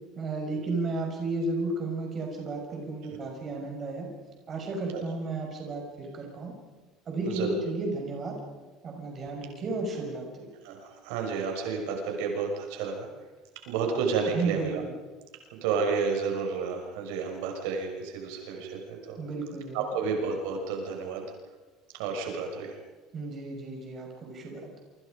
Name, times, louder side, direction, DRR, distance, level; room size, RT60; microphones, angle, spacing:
voice 1, 0.2-4.1 4.5-6.5 7.1-8.4 8.8-10.5 14.3-14.7 19.2-19.8 23.1-24.8, right 3 dB, 30° right, 1 dB, 5.6 m, -33 dB
voice 2, 7.3-7.6 10.6-13.1 13.7-14.8 15.6-19.2 19.7-21.2 21.9-22.8, right 5 dB, 85° right, 2 dB, 6.1 m, -31 dB
28.0 x 25.5 x 5.3 m, 1.3 s
cardioid pair, 160°, 0 cm